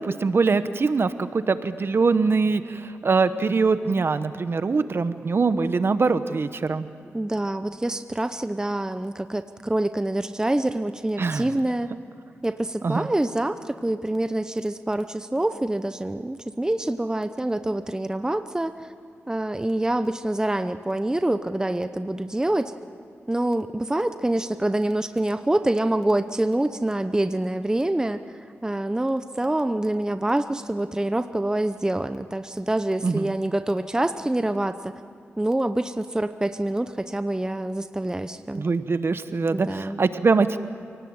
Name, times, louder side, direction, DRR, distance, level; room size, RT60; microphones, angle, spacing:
voice 1, 0.0-6.9 11.2-11.5 12.8-13.1 33.0-33.3 38.5-40.6, right 4 dB, 55° right, 11 dB, 1.0 m, -23 dB
voice 2, 7.1-11.9 12.4-18.7 19.3-22.7 23.3-34.9 35.4-38.6 39.5-40.0, right 1 dB, 15° right, 10 dB, 0.8 m, -26 dB
27.5 x 18.0 x 8.7 m, 2.3 s
cardioid pair, 70°, 5 cm